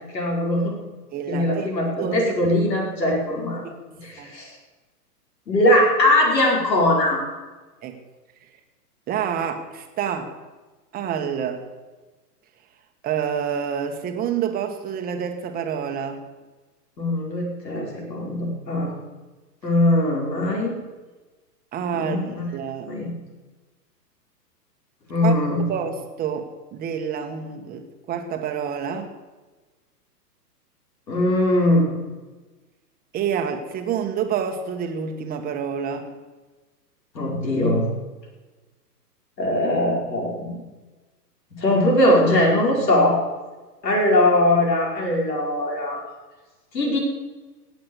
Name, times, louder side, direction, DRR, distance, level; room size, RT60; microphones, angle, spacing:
voice 1, 0.1-0.7 1.3-3.6 4.0-4.5 5.5-7.2 17.0-18.9 19.6-20.7 21.9-22.5 22.9-23.1 25.1-25.6 31.1-31.9 37.1-37.9 39.4-40.6 41.5-43.2 43.8-46.0 46.7-47.0, left 1 dB, 85° left, -1 dB, 5.5 m, -21 dB
voice 2, 1.1-1.7 2.0-2.3 3.6-3.7 4.2-4.3 7.8-8.0 9.1-10.4 10.9-11.7 13.0-16.3 21.7-22.9 25.2-25.3 25.7-29.1 33.1-36.1, right 7 dB, 20° right, 6 dB, 1.4 m, -28 dB
17.5 x 7.7 x 8.1 m, 1.2 s
hypercardioid pair, 135°, 49 cm